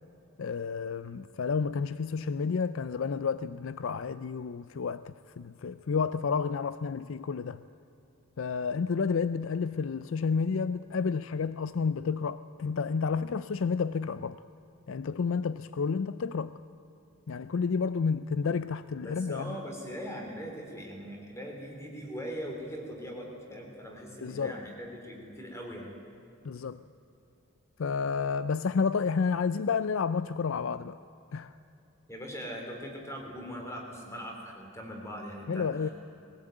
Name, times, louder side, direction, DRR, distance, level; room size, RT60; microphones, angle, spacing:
voice 1, 0.4-7.6 8.4-14.4 14.9-16.5 17.3-19.6 24.2-24.6 26.4-26.8 27.8-31.0 31.3-31.5 35.5-35.9, left 5 dB, 65° left, 0.4 m, -30 dB
voice 2, 19.0-25.9 32.1-35.9, equal, 15° left, 3.6 m, -41 dB
21.5 x 16.0 x 9.1 m
head